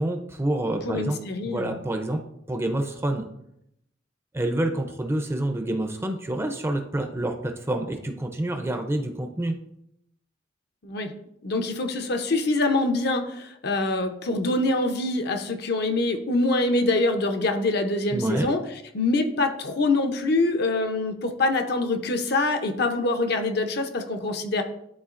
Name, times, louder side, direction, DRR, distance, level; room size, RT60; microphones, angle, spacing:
voice 1, 0.0-1.2 1.4-2.2 2.5-3.2 4.3-9.5 18.1-18.5, right 1 dB, 15° right, 5 dB, 0.5 m, -27 dB
voice 2, 0.8-1.8 10.8-11.1 11.4-18.6 18.9-24.6, left 2 dB, 60° left, 6 dB, 0.7 m, -25 dB
11.0 x 3.8 x 2.5 m, 0.78 s
head